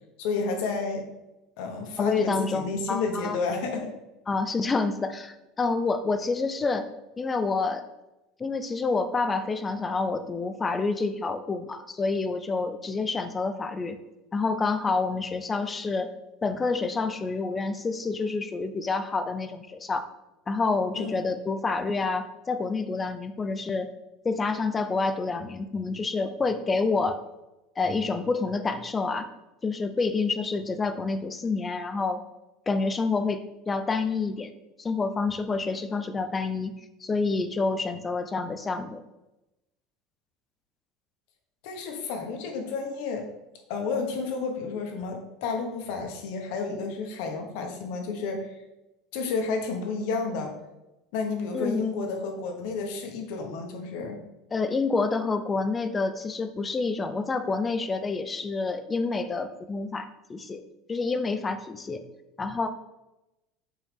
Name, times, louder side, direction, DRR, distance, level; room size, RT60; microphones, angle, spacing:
voice 1, 0.2-1.0 1.6-3.9 20.9-21.2 41.6-43.3 43.7-48.5 49.1-50.5 51.1-54.2, left 4 dB, 65° left, 3 dB, 1.4 m, -31 dB
voice 2, 2.0-3.4 4.3-6.9 7.2-7.8 8.4-14.0 14.3-16.1 16.4-20.1 20.5-23.9 24.2-27.2 27.8-29.3 29.6-32.2 32.7-34.5 34.8-36.7 37.0-39.0 51.5-51.8 54.5-60.6 60.9-62.0 62.4-62.7, left 4 dB, 15° left, 10 dB, 0.4 m, -28 dB
8.8 x 4.5 x 3.6 m, 0.97 s
cardioid pair, 170°, 0 cm